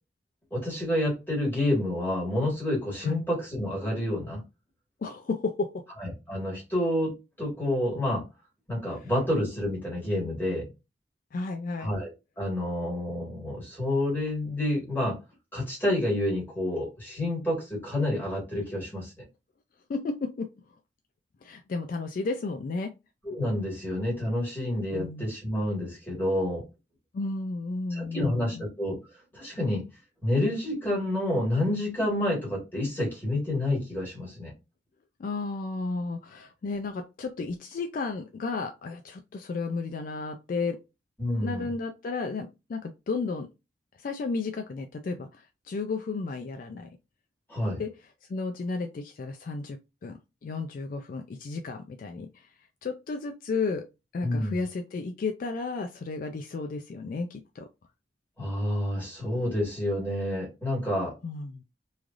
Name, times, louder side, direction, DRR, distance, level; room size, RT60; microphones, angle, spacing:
voice 1, 0.5-4.4 6.0-8.2 8.7-10.7 11.8-12.1 12.4-15.2 15.5-19.1 23.2-26.7 27.9-29.0 29.3-29.9 30.2-34.5 41.2-41.7 47.5-47.8 54.2-54.6 58.4-61.2, left 1 dB, 10° left, 1.6 m, -29 dB
voice 2, 5.0-5.8 9.0-9.1 11.3-11.9 19.9-20.5 21.4-22.9 24.9-25.3 27.1-28.6 35.2-40.8 41.4-43.5 44.0-47.0 47.8-47.9 48.3-52.5 52.8-53.9 54.1-57.7 61.2-61.6, left 3 dB, 50° left, 0.3 m, -33 dB
3.1 x 2.4 x 2.4 m
head